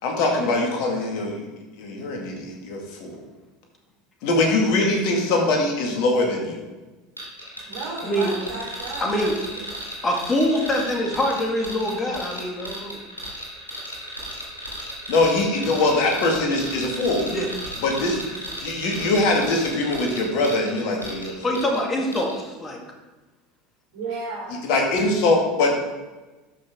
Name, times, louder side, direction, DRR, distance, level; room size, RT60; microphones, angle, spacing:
voice 1, 0.0-1.5 1.7-3.2 4.2-6.6 15.1-17.3 17.8-18.2 18.6-21.6 24.6-25.8, left 2 dB, 55° left, 1 dB, 1.9 m, -22 dB
sound 1, 7.2-21.8 22.1-22.4, equal, 90° left, 2.6 m, -35 dB
voice 2, 7.7-9.3 9.6-9.7 23.9-24.6, right 3 dB, 65° right, -8 dB, 2.9 m, -33 dB
voice 3, 9.0-9.4 10.0-13.0 17.3-17.5 21.4-22.8, left 1 dB, 25° left, 1 dB, 2.0 m, -24 dB
12.5 x 5.6 x 3.6 m, 1.2 s
figure-of-eight pair, 75°, 0 cm